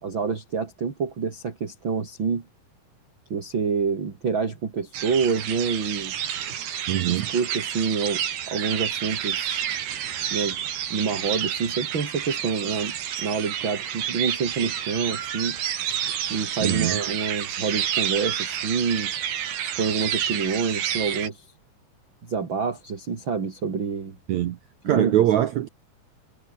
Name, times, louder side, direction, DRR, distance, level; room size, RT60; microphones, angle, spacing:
voice 1, 0.0-2.4 3.3-6.1 7.3-9.7 10.3-10.6 10.9-15.6 15.9-16.0 16.3-19.1 19.8-21.4 22.2-24.2 24.8-25.3, right 5 dB, 35° right, 3.0 m, -27 dB
sound 1, 4.9-21.3, right 10 dB, 85° right, 4.3 m, -29 dB
voice 2, 6.9-7.3 16.6-17.0 24.3-24.6 24.9-25.7, right 12 dB, 70° right, 1.8 m, -22 dB
omnidirectional pair, 4.4 m